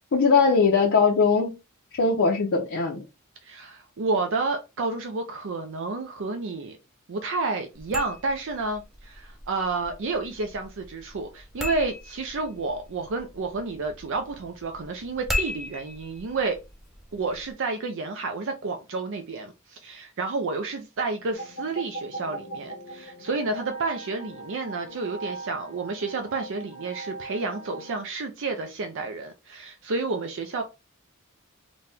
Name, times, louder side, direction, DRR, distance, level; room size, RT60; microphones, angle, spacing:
voice 1, 0.1-1.5 2.0-3.0, left 4 dB, 60° left, 0.6 m, -20 dB
voice 2, 3.4-6.8 7.1-16.6 17.1-30.6, right 3 dB, 60° right, 0.5 m, -30 dB
sound 1, 7.7-17.5, left 1 dB, ahead, 0.5 m, -38 dB
sound 2, 21.3-28.0, right 2 dB, 75° left, 1.0 m, -40 dB
4.1 x 2.2 x 3.4 m
head